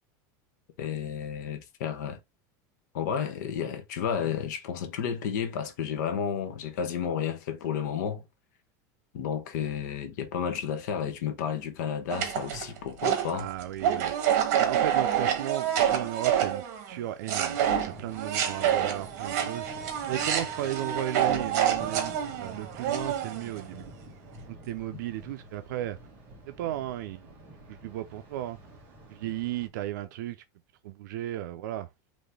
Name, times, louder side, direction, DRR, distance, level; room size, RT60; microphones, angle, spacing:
voice 1, 0.8-2.2 2.9-8.2 9.1-13.5, left 8 dB, 75° left, 1.0 m, -32 dB
sound 1, 12.1-17.0 17.3-23.6, right 9 dB, 60° right, 1.4 m, -27 dB
voice 2, 13.3-14.2 14.6-17.6 17.8-19.6 20.1-22.1 22.4-23.9 24.5-26.0 26.5-27.3 27.7-28.6 29.1-30.4 30.8-31.9, right 13 dB, 80° right, 0.5 m, -35 dB
Thunder, 17.5-29.7, right 1 dB, 20° right, 1.7 m, -49 dB
4.2 x 3.1 x 3.3 m
supercardioid pair, 180°, 10 cm